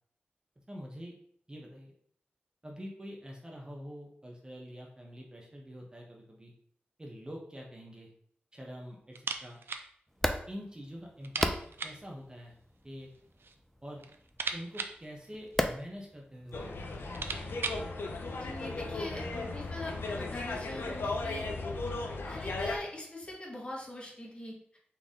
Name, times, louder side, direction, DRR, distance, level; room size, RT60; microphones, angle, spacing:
voice 1, 0.7-1.1 1.5-1.9 2.6-6.5 7.0-8.1 8.5-9.6 10.2-11.5 11.8-12.5 12.8-13.1 13.8-14.0 14.5-16.7, equal, 20° right, -1 dB, 0.9 m, -45 dB
sound 1, 9.1-9.9 10.2-10.3 10.6-10.7 11.2-12.1 13.0-13.6 13.9-15.9 16.6-16.7 17.0-17.9, right 4 dB, 80° right, 0.4 m, -39 dB
sound 2, 10.1-17.9, equal, 5° left, 0.5 m, -38 dB
sound 3, 16.5-22.8, left 3 dB, 80° left, 0.7 m, -36 dB
voice 2, 18.4-21.5 22.2-24.8, left 1 dB, 30° left, -2 dB, 1.4 m, -42 dB
4.2 x 3.3 x 3.6 m, 0.63 s
wide cardioid pair, 85°, 4 cm